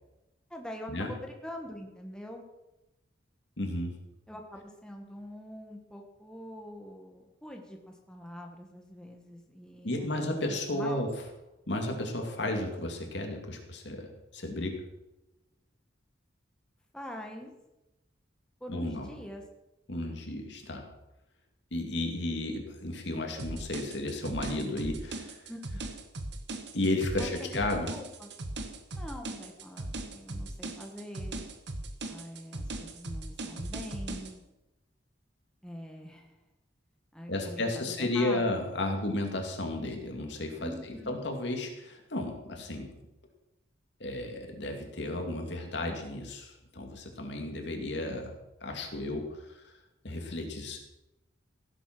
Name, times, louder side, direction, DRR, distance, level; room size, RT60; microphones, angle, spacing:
voice 1, 0.5-2.4 4.3-11.1 16.9-17.5 18.6-19.4 25.5-25.8 27.2-28.3 28.9-31.5 32.1-34.4 35.6-36.4 37.1-37.6 38.0-38.5 40.6-41.2, equal, 5° left, 2 dB, 1.4 m, -44 dB
voice 2, 3.6-4.0 9.8-11.1 11.7-14.8 18.7-19.1 19.9-20.9 21.7-25.5 26.7-27.9 37.3-40.7 41.1-42.9 44.0-48.3 48.6-49.7 50.0-50.8, left 1 dB, 65° left, 3 dB, 2.4 m, -33 dB
sound 1, 23.4-34.3, right 2 dB, 60° right, 1.4 m, -38 dB
16.0 x 8.1 x 6.1 m, 0.95 s
head